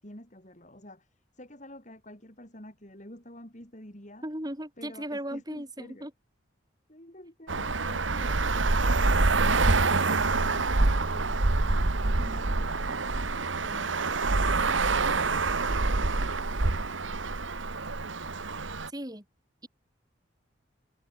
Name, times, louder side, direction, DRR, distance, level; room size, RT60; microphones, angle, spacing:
voice 1, 0.0-4.3 4.8-6.1 6.9-13.0, left 1 dB, 40° left, 5.6 m, -49 dB
voice 2, 4.2-6.1 18.9-19.3 19.6-19.7, right 1 dB, 20° right, 5.4 m, -36 dB
Traffic noise roadway noise, 7.5-18.9, right 3 dB, 80° right, 1.5 m, -26 dB
head